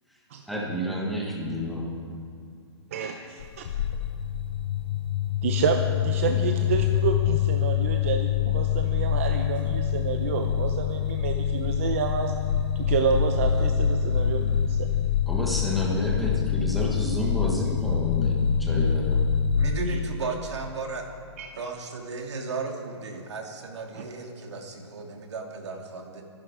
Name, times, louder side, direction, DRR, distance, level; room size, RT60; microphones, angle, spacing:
voice 1, 0.5-1.9 15.3-19.2, equal, ahead, -4 dB, 1.3 m, -29 dB
sound 1, 3.4-19.8, left 9 dB, 20° left, 0.4 m, -25 dB
voice 2, 5.4-12.3 12.8-14.9 19.9-20.0 21.4-21.5 23.9-24.0, right 6 dB, 30° right, 5 dB, 0.7 m, -29 dB
voice 3, 19.6-21.0 21.5-26.2, right 3 dB, 70° right, 2 dB, 2.8 m, -34 dB
23.5 x 11.0 x 5.1 m, 2.4 s
hypercardioid pair, 180°, 15 cm